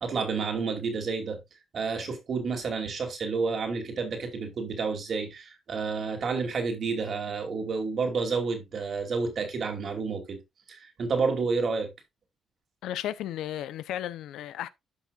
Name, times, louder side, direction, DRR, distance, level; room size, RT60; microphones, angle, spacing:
voice 1, 0.0-1.4 1.7-10.4 10.7-11.9, right 4 dB, 50° right, 2.5 m, -30 dB
voice 2, 12.8-14.7, left 12 dB, 85° left, 0.6 m, -34 dB
12.0 x 5.7 x 2.4 m
cardioid pair, 90°, 0 cm